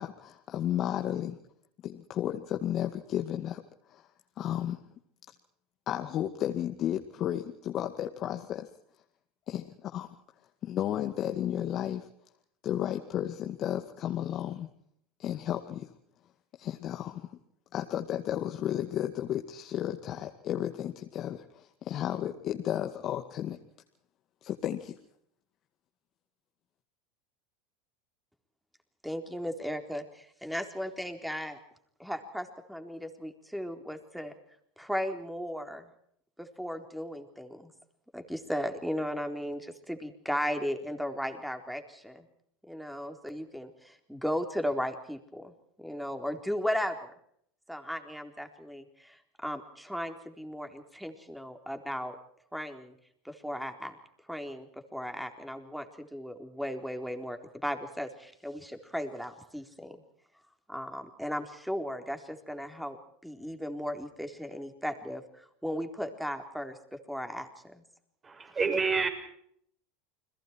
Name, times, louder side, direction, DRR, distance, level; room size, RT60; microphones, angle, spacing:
voice 1, 0.0-1.4 1.8-3.6 3.9-4.1 4.4-4.8 5.9-8.7 9.5-10.1 10.6-12.1 12.6-14.7 15.2-15.9 16.6-17.3 17.7-23.6 24.4-25.0, left 11 dB, 45° left, 4 dB, 2.1 m, -33 dB
voice 2, 29.0-31.6 32.0-34.3 34.8-35.8 36.4-37.7 38.1-42.2 42.7-45.5 45.8-47.1 47.7-52.2 52.5-52.9 53.2-53.9 54.3-60.0 60.7-63.0 63.2-67.8, equal, ahead, 6 dB, 4.0 m, -36 dB
voice 3, 68.2-69.1, right 5 dB, 25° right, 6 dB, 6.6 m, -28 dB
30.0 x 22.0 x 4.6 m, 0.68 s
hypercardioid pair, 100°, 0 cm